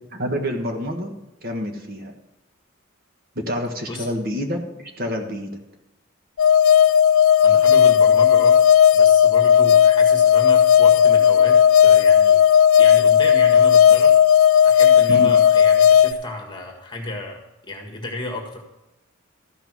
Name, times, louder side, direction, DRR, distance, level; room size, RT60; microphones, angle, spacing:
voice 1, 0.1-1.1 1.4-2.1 3.3-5.6 15.1-15.3, equal, 45° right, 3 dB, 1.4 m, -28 dB
sound 1, 6.4-16.1, left 8 dB, 90° left, 0.4 m, -14 dB
voice 2, 7.4-8.6 8.9-12.4 12.8-14.1 14.6-18.6, left 1 dB, 25° left, 1 dB, 1.8 m, -32 dB
14.0 x 5.9 x 6.1 m, 0.92 s
head